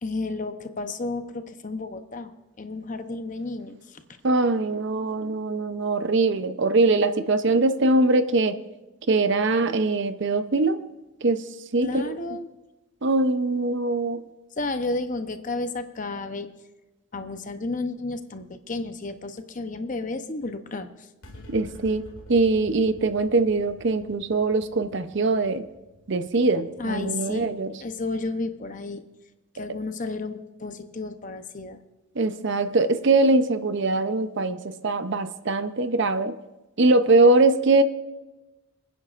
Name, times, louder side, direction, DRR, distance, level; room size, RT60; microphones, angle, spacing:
voice 1, 0.0-2.3 2.6-4.0 11.8-12.5 14.6-16.5 17.1-20.9 26.8-27.5 27.8-29.0 29.5-31.8, left 3 dB, 40° left, 9 dB, 0.7 m, -32 dB
voice 2, 4.2-8.6 9.1-10.8 11.2-12.2 13.0-14.3 21.5-25.7 26.1-27.7 32.2-36.3 36.8-37.8, right 3 dB, 55° right, 11 dB, 0.6 m, -22 dB
sound 1, 21.2-27.9, left 1 dB, 80° left, 2.3 m, -48 dB
27.0 x 9.9 x 2.5 m, 1.1 s
head